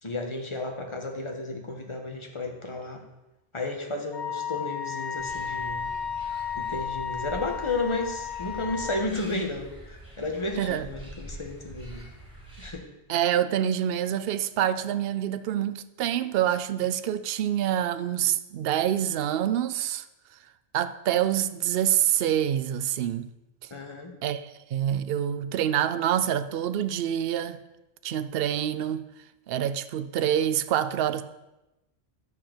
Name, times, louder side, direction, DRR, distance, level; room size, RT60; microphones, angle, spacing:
voice 1, 0.0-3.0 3.5-5.9 6.5-12.1 12.6-12.8 23.7-24.1, left 2 dB, 25° left, 1.4 m, -33 dB
Wind instrument woodwind instrument, 4.1-9.1, left 7 dB, 85° left, 1.9 m, -33 dB
sound 1, 5.2-12.7, equal, 5° right, 4.2 m, -45 dB
voice 2, 13.1-20.0 20.7-23.3 24.2-27.6 28.0-29.0 29.5-31.2, right 10 dB, 65° right, 0.8 m, -26 dB
10.5 x 4.6 x 7.6 m
omnidirectional pair, 1.1 m